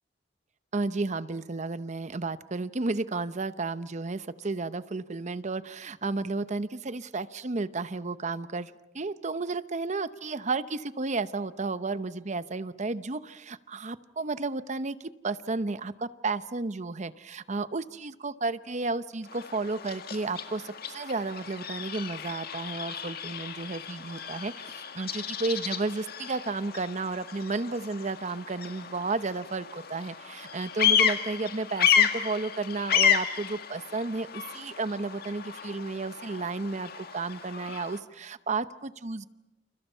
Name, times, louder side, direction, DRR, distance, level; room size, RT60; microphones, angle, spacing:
voice 1, 0.7-39.3, right 3 dB, 40° right, 14 dB, 0.8 m, -32 dB
Bird vocalization bird call bird song, 19.2-38.0, left 8 dB, 60° left, 1.9 m, -31 dB
29.0 x 28.5 x 5.6 m, 1.0 s
head